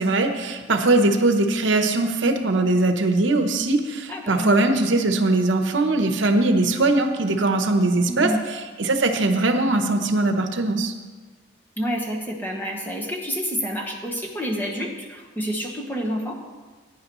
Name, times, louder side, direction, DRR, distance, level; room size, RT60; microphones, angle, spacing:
voice 1, 0.0-10.9, right 2 dB, 70° right, 6 dB, 0.9 m, -21 dB
voice 2, 4.1-4.5 8.1-8.4 11.8-16.4, equal, 10° left, 0 dB, 1.1 m, -28 dB
16.0 x 9.7 x 3.0 m, 1.4 s
head